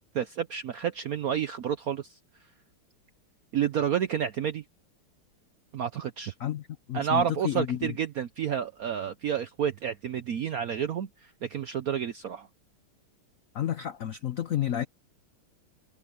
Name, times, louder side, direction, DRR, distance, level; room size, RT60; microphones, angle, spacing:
voice 1, 0.0-2.2 3.5-4.6 5.7-6.3 6.9-12.5, right 8 dB, 75° right, 0.8 m, -30 dB
voice 2, 6.4-7.9 13.5-14.8, left 11 dB, 90° left, 0.7 m, -31 dB
omnidirectional pair, 2.4 m